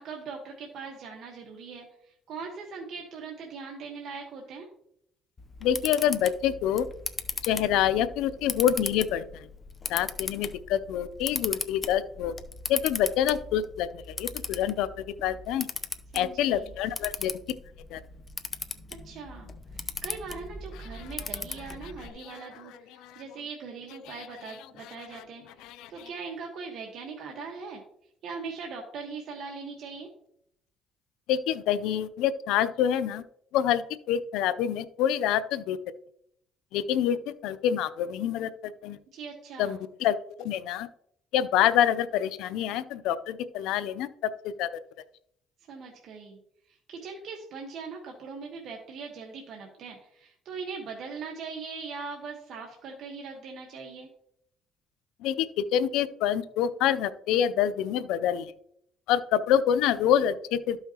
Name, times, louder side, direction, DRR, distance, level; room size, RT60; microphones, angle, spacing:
voice 1, 0.0-4.7 16.1-16.7 19.0-30.1 39.1-39.8 45.7-54.1, right 5 dB, 65° right, 1 dB, 1.3 m, -41 dB
Camera, 5.4-22.1, left 4 dB, 30° left, 0.6 m, -38 dB
voice 2, 5.6-6.9 7.4-9.4 9.9-12.3 12.7-14.9 15.2-15.7 16.1-17.4 17.9-18.0 23.0-23.2 25.8-25.9 31.3-33.2 33.5-35.8 36.7-39.0 39.6-40.9 41.3-44.1 44.4-44.7 55.2-58.5 59.1-60.8, left 10 dB, 90° left, 13 dB, 0.4 m, -26 dB
12.5 x 5.6 x 2.9 m, 0.72 s
cardioid pair, 105°, 0 cm